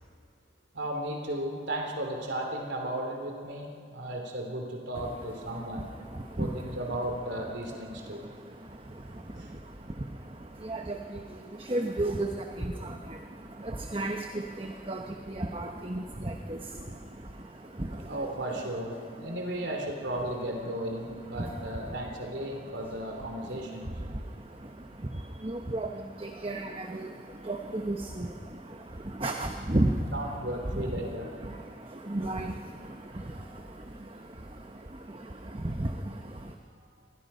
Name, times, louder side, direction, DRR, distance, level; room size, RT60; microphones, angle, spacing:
voice 1, 0.7-5.8 6.4-8.3 9.4-9.5 16.8-16.9 18.1-23.9 30.1-31.3 33.1-33.5, right 1 dB, 80° right, 2 dB, 3.0 m, -35 dB
voice 2, 4.9-7.1 7.4-18.6 18.9-19.4 20.2-20.3 20.6-36.5, right 1 dB, 30° right, 3 dB, 1.0 m, -36 dB
28.5 x 22.5 x 5.5 m, 2.4 s
head